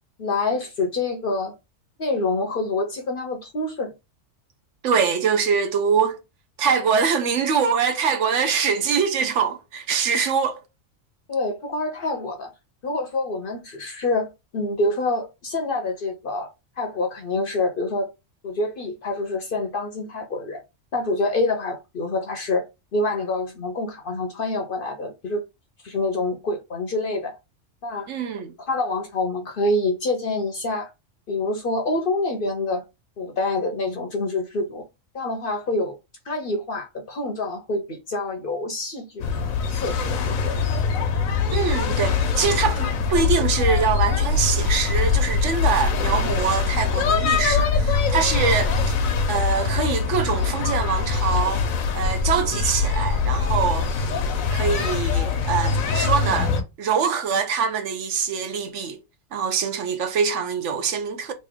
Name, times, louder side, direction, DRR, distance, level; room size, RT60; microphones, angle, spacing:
voice 1, 0.2-1.5 2.0-3.9 11.3-12.5 12.8-16.5 16.8-18.1 18.4-20.6 20.9-22.6 22.9-25.4 25.8-27.3 27.8-28.1 28.7-30.9 31.3-32.8 33.2-34.8 35.1-36.0 36.3-39.3 39.7-40.7, left 2 dB, 55° left, 0.7 m, -26 dB
voice 2, 4.8-6.2 6.6-10.6 28.1-28.5 41.5-48.9 49.3-51.6 51.9-53.9 54.5-56.5 56.8-59.0 59.3-61.3, right 6 dB, 70° right, 0.9 m, -24 dB
sound 1, 39.2-56.6, left 5 dB, 90° left, 1.1 m, -23 dB
3.2 x 2.6 x 3.5 m
omnidirectional pair, 1.4 m